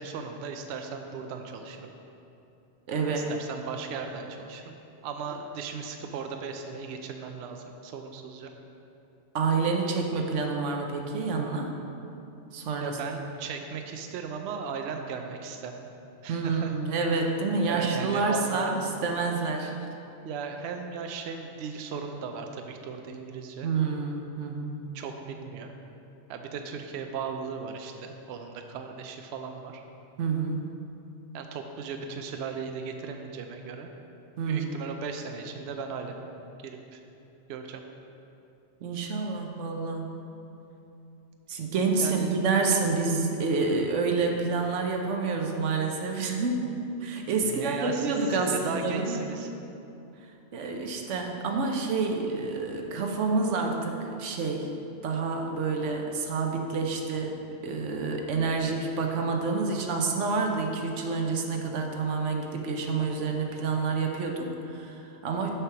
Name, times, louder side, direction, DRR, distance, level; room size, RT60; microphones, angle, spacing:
voice 1, 0.0-1.9 3.1-4.7 5.0-8.5 12.8-15.9 16.2-16.7 17.6-18.8 20.2-23.7 24.9-25.7 26.3-29.8 31.3-33.9 34.5-36.3 36.6-37.0 37.5-37.8 42.0-42.4 47.4-49.5, right 5 dB, 70° right, 5 dB, 0.8 m, -37 dB
voice 2, 2.9-3.3 9.3-11.7 12.5-13.0 16.3-18.7 19.0-19.7 23.6-24.8 30.2-30.7 34.4-34.7 38.8-40.2 41.5-46.6 47.0-49.2 50.5-54.7 55.0-57.3 57.6-65.5, right 4 dB, 90° right, 3 dB, 1.1 m, -28 dB
6.6 x 4.6 x 5.8 m, 2.8 s
omnidirectional pair, 1.2 m